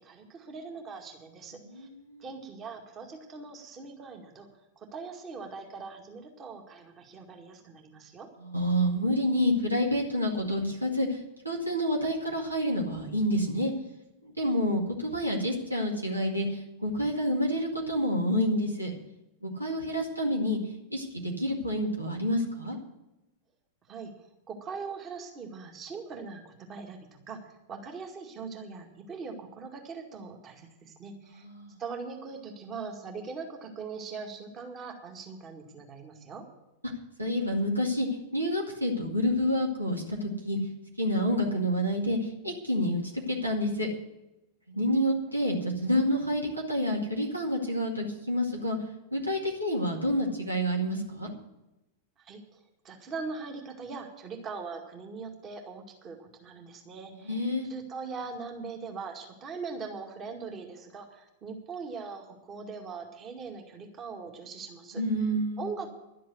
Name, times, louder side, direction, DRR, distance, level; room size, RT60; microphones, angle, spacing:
voice 1, 0.0-1.9 2.2-4.5 4.8-8.3 23.9-24.1 24.5-27.4 27.7-31.5 31.8-36.5 52.2-52.6 52.8-65.0 65.6-65.9, right 4 dB, 30° right, 3 dB, 2.1 m, -41 dB
voice 2, 1.5-2.2 8.4-11.2 11.4-13.7 14.2-18.9 19.4-20.6 20.9-22.8 31.3-31.7 37.2-38.1 38.3-40.6 41.0-43.9 44.7-48.8 49.1-51.3 57.2-57.7 64.9-65.7, equal, 85° right, 0 dB, 2.1 m, -28 dB
12.0 x 7.7 x 9.3 m, 0.94 s
figure-of-eight pair, 95°, 0 cm